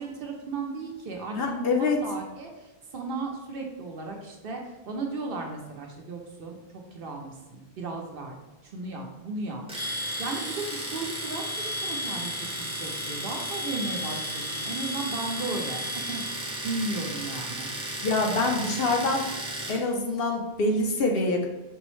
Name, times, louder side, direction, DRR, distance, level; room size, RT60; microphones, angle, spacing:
voice 1, 0.0-9.6 10.2-15.8 16.1-16.2 16.6-17.7, right 3 dB, 60° right, 1 dB, 0.8 m, -35 dB
voice 2, 1.3-2.0 18.0-19.3 19.7-21.5, left 2 dB, 65° left, 2 dB, 0.8 m, -25 dB
Domestic sounds home sounds, 9.7-19.9, right 1 dB, 5° right, 0.6 m, -35 dB
sound 1, 9.8-16.3, left 1 dB, 30° left, 0.7 m, -36 dB
5.3 x 2.0 x 3.0 m, 1.1 s
omnidirectional pair, 1.1 m